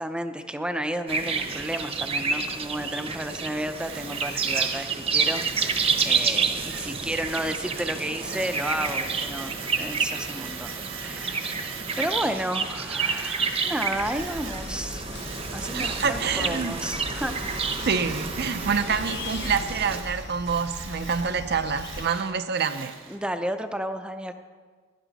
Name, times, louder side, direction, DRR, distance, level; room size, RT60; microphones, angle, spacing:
voice 1, 0.0-10.7 11.0-15.0 15.5-17.4 22.1-22.2 23.1-24.3, right 1 dB, 5° right, 8 dB, 0.6 m, -32 dB
sound 1, 1.1-20.0, right 5 dB, 30° right, 0.9 m, -29 dB
Tools, 3.7-12.5 12.9-14.8 15.1-23.2, right 6 dB, 70° right, 1.4 m, -41 dB
sound 2, 13.9-22.1, left 2 dB, 55° left, 1.0 m, -39 dB
voice 2, 15.7-16.8 17.8-22.9, right 6 dB, 55° right, 9 dB, 0.6 m, -27 dB
16.5 x 11.0 x 4.1 m, 1.5 s
head